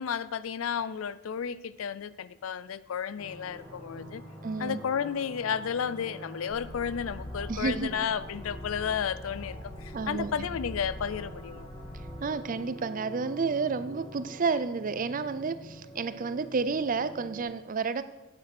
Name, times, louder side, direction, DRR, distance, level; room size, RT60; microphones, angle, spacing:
voice 1, 0.0-4.2 4.6-11.7, left 7 dB, 75° left, 17 dB, 0.4 m, -32 dB
sound 1, 3.2-17.4, right 1 dB, 25° left, 2.2 m, -46 dB
voice 2, 4.4-4.8 7.5-7.9 9.9-10.5 12.2-18.0, right 4 dB, 40° right, 14 dB, 0.5 m, -30 dB
sound 2, 6.5-12.1, left 1 dB, 60° left, 2.8 m, -43 dB
8.9 x 7.6 x 6.0 m, 1.1 s
head